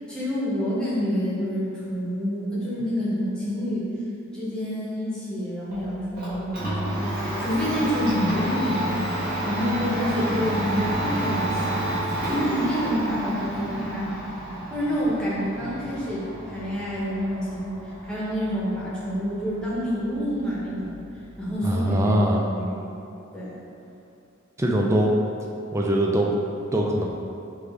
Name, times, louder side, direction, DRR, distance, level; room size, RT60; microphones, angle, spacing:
voice 1, 0.1-3.8 4.3-11.8 12.2-14.2 14.7-20.9 21.4-22.2 22.5-22.9 23.3-23.6, equal, 5° left, -9 dB, 0.8 m, -28 dB
Domestic sounds home sounds, 5.7-21.5, right 1 dB, 50° right, 1.4 m, -30 dB
voice 2, 21.6-22.5 24.6-25.1 25.7-26.3 26.7-27.1, right 1 dB, 15° right, -1 dB, 0.3 m, -22 dB
4.9 x 2.5 x 3.5 m, 2.7 s
head